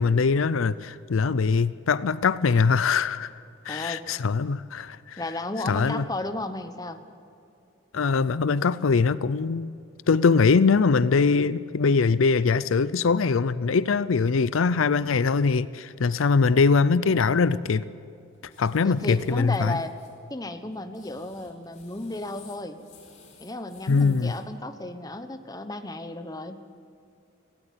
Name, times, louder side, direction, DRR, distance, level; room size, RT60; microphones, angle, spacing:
voice 1, 0.0-3.3 3.6-5.2 5.7-6.0 7.9-9.7 10.1-17.9 18.6-19.8 23.9-24.3, left 4 dB, 85° left, 0.5 m, -22 dB
voice 2, 3.7-4.0 5.2-7.0 18.8-19.9 20.3-22.8 23.4-26.6, left 2 dB, 20° left, 1.0 m, -34 dB
sound 1, 18.5-20.1 20.7-24.4, left 5 dB, 35° left, 4.4 m, -54 dB
18.0 x 17.0 x 8.5 m
head